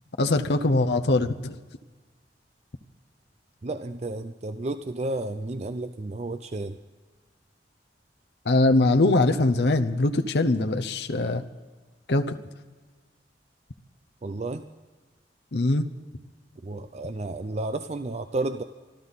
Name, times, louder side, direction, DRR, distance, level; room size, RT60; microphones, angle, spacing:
voice 1, 0.2-1.5 8.5-11.4 12.1-12.4 15.5-15.8, left 2 dB, 70° left, 6 dB, 0.8 m, -22 dB
voice 2, 3.6-6.8 14.2-14.7 16.6-18.6, right 2 dB, 40° right, 9 dB, 0.5 m, -32 dB
25.0 x 13.0 x 4.1 m, 1.4 s
head